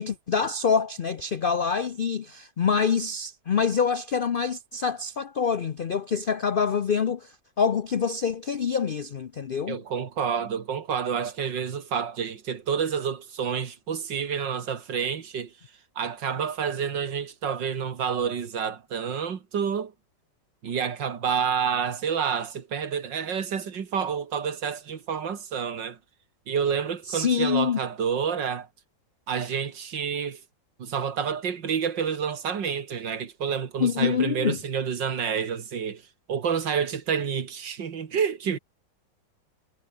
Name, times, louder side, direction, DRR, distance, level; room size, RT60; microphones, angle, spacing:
voice 1, 0.0-9.8 27.1-27.8 33.8-34.6, left 6 dB, 85° left, 0.4 m, -26 dB
voice 2, 9.7-15.5 16.0-19.9 20.6-26.0 26.5-28.7 29.3-30.4 30.8-36.0 36.3-38.6, right 7 dB, 85° right, 2.5 m, -29 dB
omnidirectional pair, 1.9 m